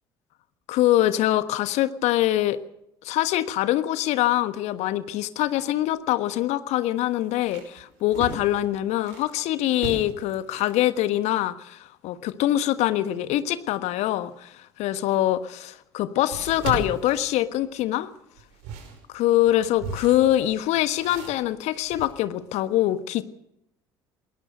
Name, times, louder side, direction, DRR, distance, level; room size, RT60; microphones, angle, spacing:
voice 1, 0.7-2.6 3.0-18.1 19.1-23.2, left 14 dB, 55° left, 1.4 m, -24 dB
sound 1, 5.8-5.9 6.3-6.4 7.0-9.3 9.7-10.8 15.1-15.2 16.3-17.9 18.4-22.1, right 5 dB, 65° right, 5.6 m, -37 dB
20.5 x 19.0 x 6.6 m
figure-of-eight pair, 60°, 13 cm